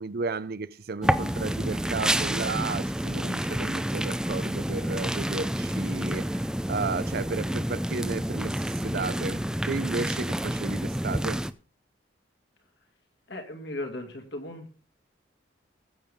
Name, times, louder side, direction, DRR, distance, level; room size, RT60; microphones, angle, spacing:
voice 1, 0.0-11.4, right 4 dB, 55° right, 0.6 m, -33 dB
sound 1, 1.0-11.5, right 1 dB, 5° right, 0.4 m, -29 dB
voice 2, 13.3-14.7, left 1 dB, 65° left, 2.5 m, -37 dB
20.0 x 7.2 x 3.6 m
head